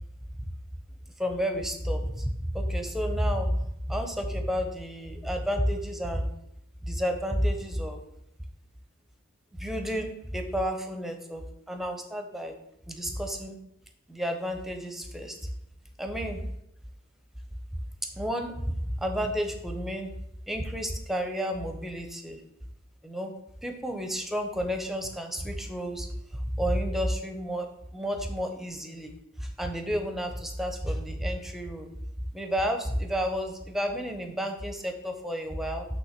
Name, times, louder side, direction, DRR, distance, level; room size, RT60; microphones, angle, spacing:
voice 1, 1.2-6.3 6.8-8.0 9.6-11.4 11.7-12.5 12.9-13.6 14.1-15.4 16.0-16.4 18.2-20.1 20.5-22.4 23.0-23.3 23.6-26.1 26.3-27.7 27.9-29.1 29.4-31.9 32.3-35.9, equal, ahead, 4 dB, 0.6 m, -31 dB
5.9 x 3.4 x 5.8 m, 0.81 s
head